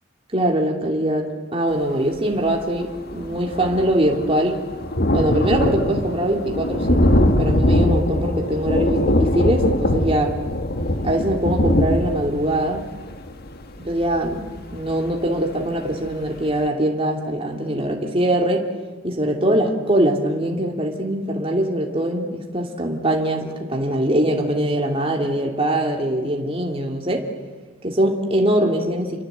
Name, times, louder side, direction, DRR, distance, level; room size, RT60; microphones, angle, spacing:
voice 1, 0.3-4.6 5.1-10.4 11.0-12.8 13.8-14.4 14.7-18.7 19.0-27.3 27.8-29.2, right 1 dB, 30° right, 1 dB, 2.8 m, -22 dB
Thunder, 2.5-2.6 2.8-15.4 15.9-16.0 16.3-16.4, left 1 dB, 50° left, 1.7 m, -22 dB
29.0 x 24.0 x 8.2 m, 1.4 s
head